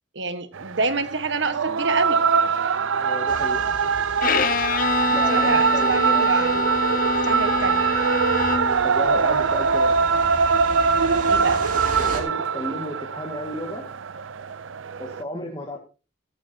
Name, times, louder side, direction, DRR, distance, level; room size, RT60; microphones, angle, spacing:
voice 1, 0.1-2.2 5.1-6.6 7.2-7.8 11.3-11.7, right 4 dB, 65° right, 1.5 m, -27 dB
sound 1, 0.5-15.2, right 5 dB, 85° right, 0.6 m, -22 dB
voice 2, 3.0-3.7 5.1-6.2 8.5-10.0 12.0-13.9 15.0-15.8, left 1 dB, 20° left, 2.0 m, -33 dB
sound 2, 3.3-12.2, right 2 dB, 45° right, 2.9 m, -37 dB
Bowed string instrument, 4.2-8.9, left 5 dB, 45° left, 0.5 m, -26 dB
15.5 x 12.5 x 2.9 m
head